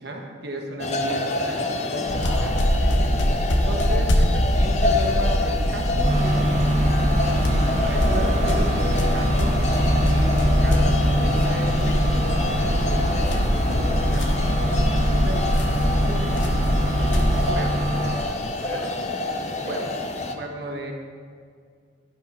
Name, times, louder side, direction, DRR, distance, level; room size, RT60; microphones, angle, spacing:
voice 1, 0.0-2.6 3.5-6.8 7.4-9.6 10.1-14.3 14.9-17.1 17.5-17.9 19.6-19.8 20.3-20.9, right 1 dB, 60° right, 1 dB, 1.4 m, -35 dB
Cowbells - Carson Iceberg Wilderness, 0.8-20.3, left 2 dB, 35° left, 0.9 m, -28 dB
sound 1, 2.1-17.5, equal, 80° left, 1.2 m, -22 dB
voice 2, 2.8-3.4 18.6-19.1 19.5-19.9, right 1 dB, 15° left, -4 dB, 2.3 m, -39 dB
sound 2, 6.0-18.2, right 1 dB, 35° right, 1.4 m, -26 dB
11.5 x 11.0 x 4.3 m, 2.1 s
head